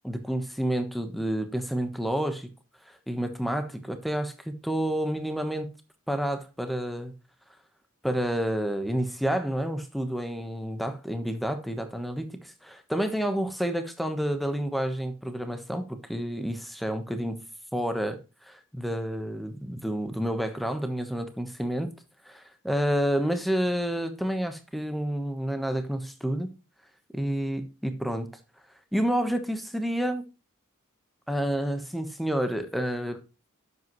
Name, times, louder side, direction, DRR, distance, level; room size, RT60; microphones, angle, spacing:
voice 1, 0.0-2.5 2.9-5.7 6.1-7.1 8.0-15.8 16.1-17.4 17.7-21.9 22.2-26.6 27.1-28.3 28.9-30.3 31.3-33.2, equal, ahead, 1.1 m, -29 dB
11.5 x 7.9 x 3.1 m
head